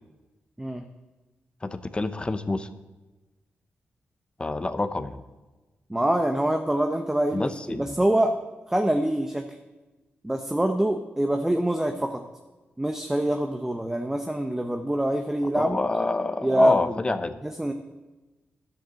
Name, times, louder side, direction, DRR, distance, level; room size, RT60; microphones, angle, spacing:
voice 1, 1.6-2.7 4.4-5.2 7.3-8.0 15.5-17.4, left 2 dB, 25° left, 11 dB, 0.8 m, -28 dB
voice 2, 5.9-8.3 8.7-9.4 10.2-12.2 12.8-15.8 16.4-17.0 17.4-17.7, right 1 dB, 10° right, 5 dB, 0.8 m, -25 dB
10.5 x 7.7 x 7.6 m, 1.2 s
cardioid pair, 75°, 4 cm